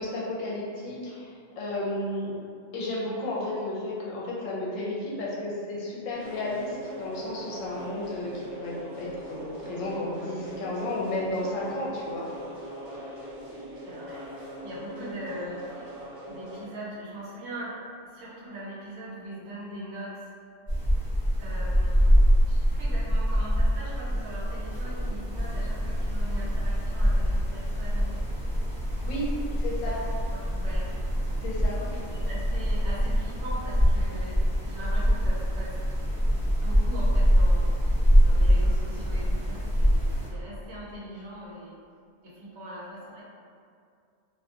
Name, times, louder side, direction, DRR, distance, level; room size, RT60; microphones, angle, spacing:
voice 1, 0.0-2.4 2.7-12.3 29.0-29.3 29.6-30.0 31.4-31.8, left 1 dB, 80° left, -5 dB, 1.0 m, -33 dB
sound 1, 6.1-16.6, right 1 dB, 40° right, 1.0 m, -41 dB
voice 2, 13.8-17.8 18.1-20.2 21.4-28.1 29.8-29.9 30.4-30.9 31.8-35.7 36.5-37.7 38.2-41.8 42.2-43.2, right 1 dB, 65° right, -7 dB, 0.8 m, -41 dB
sound 2, 20.7-40.3, equal, 20° right, 0.7 m, -24 dB
2.4 x 2.2 x 2.7 m, 2.4 s
omnidirectional pair, 1.4 m